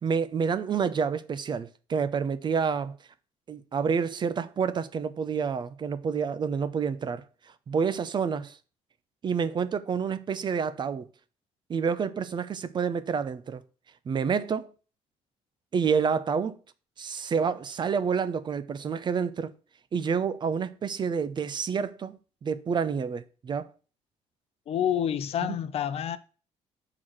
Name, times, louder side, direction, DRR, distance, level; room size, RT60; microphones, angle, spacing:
voice 1, 0.0-2.9 3.5-7.2 7.7-8.6 9.2-11.1 11.7-13.6 14.1-14.7 15.7-16.6 17.0-19.5 19.9-23.7 25.5-25.6, right 6 dB, 40° right, 0.6 m, -28 dB
voice 2, 24.7-26.2, left 10 dB, 60° left, 0.7 m, -28 dB
6.3 x 3.9 x 6.2 m
cardioid pair, 95°, 11 cm